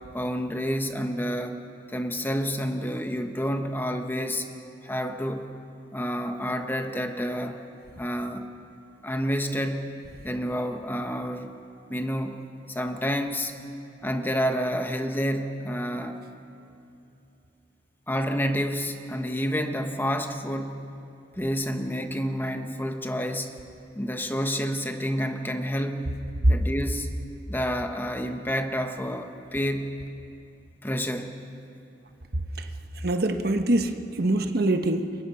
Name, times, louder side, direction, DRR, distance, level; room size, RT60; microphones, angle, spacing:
voice 1, 0.1-4.5 4.8-5.5 5.9-7.6 8.0-8.5 9.0-9.9 10.2-11.5 11.9-12.4 12.7-13.6 14.0-16.3 18.1-20.9 21.4-23.6 23.9-26.1 26.5-27.1 27.5-30.0 30.8-31.3 34.3-34.5, equal, 10° left, 5 dB, 1.3 m, -29 dB
voice 2, 33.0-35.2, right 1 dB, 60° right, 6 dB, 1.3 m, -23 dB
29.0 x 23.5 x 5.7 m, 2.8 s
head